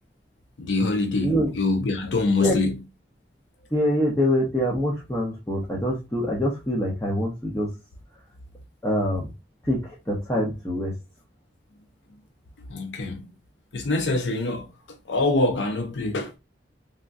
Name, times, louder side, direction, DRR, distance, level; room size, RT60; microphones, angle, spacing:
voice 1, 0.6-2.8 12.7-13.3 13.7-14.7 15.1-16.4, left 2 dB, 90° left, 0.5 m, -24 dB
voice 2, 3.7-7.7 8.8-9.3 9.6-10.9, equal, 15° left, 0.7 m, -25 dB
3.4 x 2.2 x 2.5 m
head